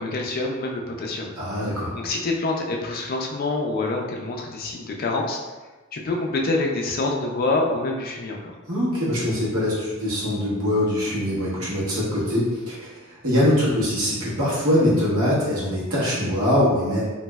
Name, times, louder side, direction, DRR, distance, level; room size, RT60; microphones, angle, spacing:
voice 1, 0.0-1.3 1.9-5.4 5.9-8.5, left 2 dB, 40° left, 0 dB, 0.4 m, -26 dB
voice 2, 1.4-1.9 8.7-17.1, left 1 dB, 70° right, -8 dB, 1.1 m, -23 dB
3.1 x 2.6 x 2.3 m, 1.2 s
head